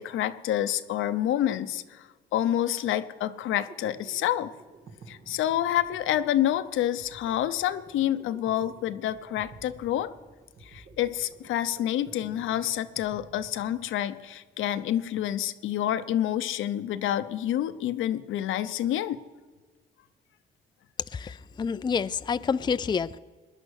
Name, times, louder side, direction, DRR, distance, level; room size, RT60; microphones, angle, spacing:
voice 1, 0.0-4.5 5.1-10.1 10.6-19.2, left 12 dB, 80° left, 11 dB, 0.8 m, -28 dB
sound 1, 3.4-14.2, right 3 dB, 65° right, 2.1 m, -51 dB
voice 2, 21.1-23.2, left 6 dB, 20° left, 13 dB, 0.4 m, -28 dB
20.0 x 10.5 x 6.5 m, 1.4 s
cardioid pair, 90°, 20 cm